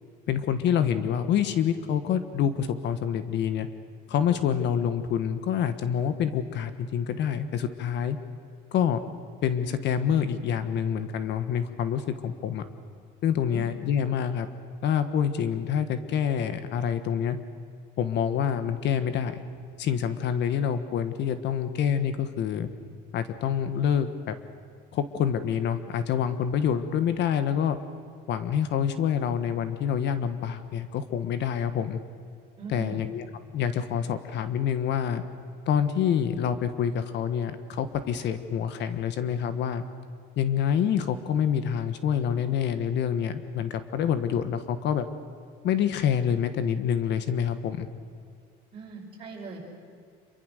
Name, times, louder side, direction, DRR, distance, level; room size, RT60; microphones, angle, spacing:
voice 1, 0.3-3.7 4.1-8.2 8.7-9.0 9.4-12.6 13.2-14.5 14.8-17.4 18.0-19.4 19.8-22.7 23.1-24.3 24.9-27.8 28.3-32.0 32.7-33.2 33.5-35.2 35.7-39.8 40.4-45.1 45.6-47.9, left 8 dB, 55° left, 11 dB, 1.4 m, -27 dB
voice 2, 32.6-33.1 48.7-49.6, right 5 dB, 25° right, -3 dB, 6.0 m, -40 dB
27.0 x 23.5 x 6.6 m, 2.2 s
cardioid pair, 150°, 21 cm